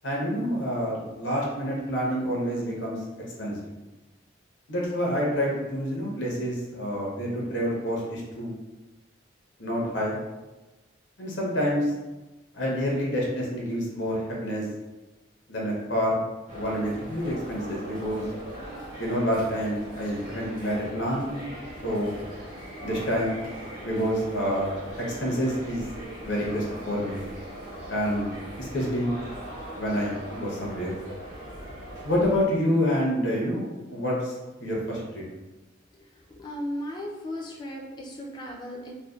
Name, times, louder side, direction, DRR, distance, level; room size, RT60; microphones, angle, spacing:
voice 1, 0.0-3.0 3.4-3.7 4.7-8.5 9.6-10.2 11.2-11.9 12.5-14.7 15.5-16.2 16.5-18.3 19.0-21.4 21.8-22.1 22.8-23.3 23.8-24.8 25.2-25.9 26.2-27.2 27.9-29.1 29.7-31.0 32.0-34.3 34.6-35.2, equal, 75° left, -4 dB, 0.7 m, -28 dB
sound 1, 16.5-32.5, right 1 dB, 45° right, 1.0 m, -40 dB
voice 2, 36.3-38.9, equal, 20° left, -1 dB, 0.3 m, -36 dB
2.6 x 2.1 x 2.3 m, 1.1 s
head